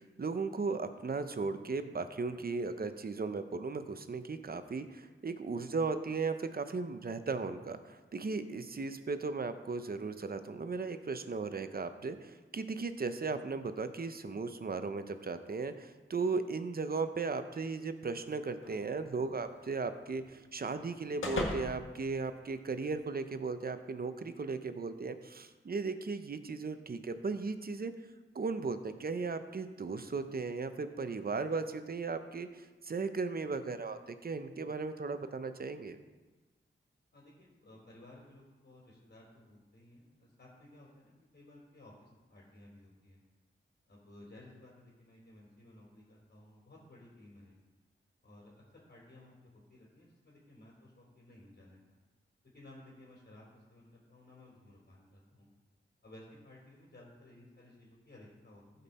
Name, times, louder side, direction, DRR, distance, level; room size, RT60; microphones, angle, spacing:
voice 1, 0.0-27.9 28.3-36.0, right 4 dB, 45° right, 9 dB, 0.8 m, -36 dB
sound 1, 18.6-23.0, left 2 dB, 75° left, 1.5 m, -42 dB
voice 2, 37.1-43.2 43.9-47.5 48.2-52.0 52.5-55.5 56.0-58.8, left 1 dB, 50° left, -5 dB, 3.3 m, -57 dB
15.0 x 5.4 x 4.3 m, 1.3 s
wide cardioid pair, 75°, 21 cm